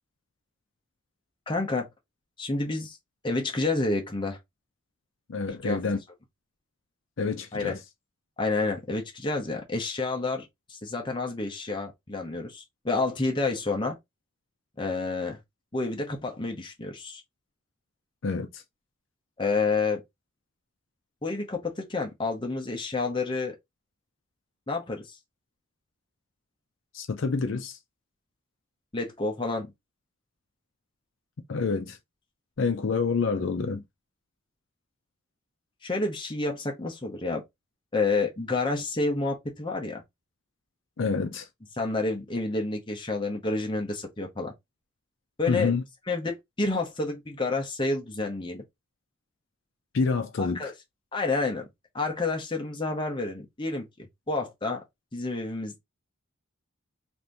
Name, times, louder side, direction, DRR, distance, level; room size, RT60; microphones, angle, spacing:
voice 1, 1.5-1.9 2.4-3.0 3.2-4.4 5.5-5.8 7.5-7.8 8.4-14.0 14.8-15.4 15.7-17.2 19.4-20.0 21.2-23.5 24.7-25.2 28.9-29.7 35.8-37.4 37.9-40.0 41.8-44.5 45.4-45.7 46.1-48.6 50.4-50.7 51.1-51.7 51.9-54.8 55.1-55.8, left 3 dB, 20° left, 0.7 m, -29 dB
voice 2, 5.3-6.0 7.2-7.8 18.2-18.6 26.9-27.8 31.5-32.0 32.6-33.8 41.0-41.5 45.5-45.8 49.9-50.7, left 4 dB, 60° left, 0.5 m, -27 dB
2.8 x 2.6 x 3.3 m
head